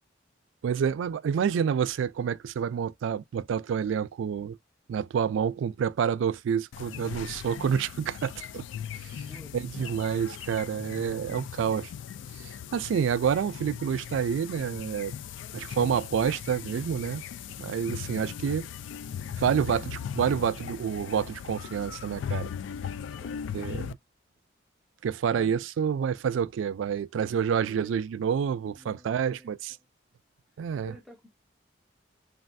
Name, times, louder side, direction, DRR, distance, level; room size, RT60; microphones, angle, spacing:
voice 1, 0.6-4.6 4.9-8.6 8.9-9.2 9.5-11.9 12.4-15.1 15.5-17.2 17.6-18.7 19.4-22.5 23.5-24.0 25.0-29.8 30.6-30.9, right 7 dB, 85° right, 0.3 m, -28 dB
sound 1, 6.7-23.9, left 8 dB, 80° left, 0.3 m, -39 dB
voice 2, 9.3-10.1 23.1-23.4 25.3-25.5 27.7-27.9 28.7-29.9 30.8-31.3, left 1 dB, ahead, 0.6 m, -51 dB
3.3 x 2.3 x 2.5 m
head